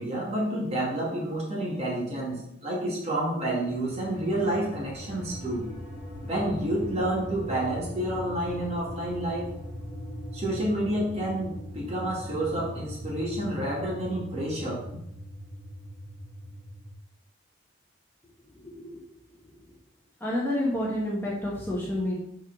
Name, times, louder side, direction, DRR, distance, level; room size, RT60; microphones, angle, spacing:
voice 1, 0.0-5.7 6.2-9.5 10.3-14.8, right 1 dB, 30° right, -3 dB, 1.9 m, -29 dB
sound 1, 3.6-16.9, equal, 10° right, 2.1 m, -40 dB
voice 2, 18.6-19.0 20.2-22.2, left 1 dB, 10° left, -5 dB, 1.1 m, -29 dB
6.1 x 4.0 x 6.0 m, 0.77 s
head